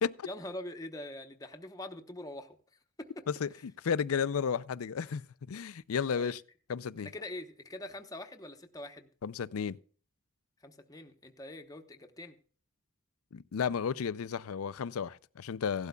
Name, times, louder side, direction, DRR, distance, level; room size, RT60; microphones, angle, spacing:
voice 1, 0.2-2.6 3.0-3.2 6.1-6.3 7.0-9.1 10.6-12.4, left 1 dB, 15° left, 0.9 m, -43 dB
voice 2, 3.3-6.4 6.7-7.1 9.2-9.8 13.3-15.9, left 6 dB, 80° left, 0.5 m, -33 dB
16.5 x 12.0 x 2.3 m
head